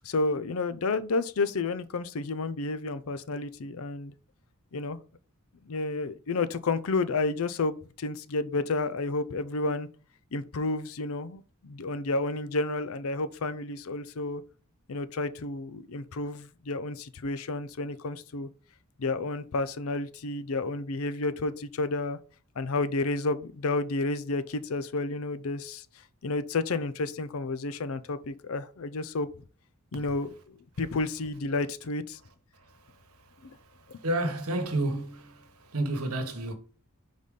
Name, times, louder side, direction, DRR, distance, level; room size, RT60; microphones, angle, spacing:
voice 1, 0.0-4.1 4.7-5.0 5.6-9.9 10.3-14.4 14.9-18.5 19.0-22.2 22.6-25.9 26.2-29.3 29.9-32.2 33.4-33.6 33.9-34.0, left 3 dB, 70° left, 0.5 m, -31 dB
voice 2, 34.0-35.4 35.7-36.5, right 1 dB, 80° right, 1.2 m, -30 dB
4.9 x 4.1 x 5.3 m
head